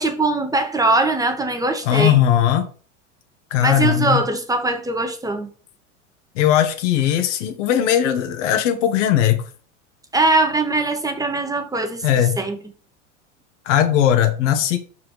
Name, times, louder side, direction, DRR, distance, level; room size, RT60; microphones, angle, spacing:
voice 1, 0.0-2.2 3.6-5.5 10.1-12.0 12.4-12.6, right 2 dB, 10° right, 1.4 m, -21 dB
voice 2, 1.8-2.7 3.5-4.2 6.3-9.4 12.0-12.4 13.6-14.8, left 10 dB, 70° left, 1.6 m, -18 dB
6.0 x 4.7 x 4.9 m
hypercardioid pair, 105°, 38 cm